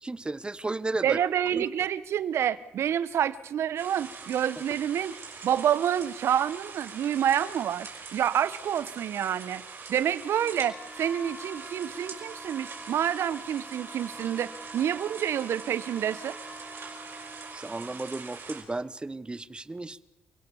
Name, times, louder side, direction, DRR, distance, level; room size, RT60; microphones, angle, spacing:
voice 1, 0.0-1.2 1.5-1.7 17.5-20.0, right 2 dB, 20° right, 17 dB, 1.2 m, -34 dB
voice 2, 1.0-5.1 5.4-9.6 9.9-16.3, right 9 dB, 70° right, 17 dB, 1.0 m, -28 dB
sound 1, 3.8-18.6, right 5 dB, 55° right, 5.7 m, -43 dB
sound 2, 10.4-17.6, equal, 10° left, 5.4 m, -46 dB
28.0 x 17.0 x 7.1 m, 1.0 s
supercardioid pair, 60°, 5 cm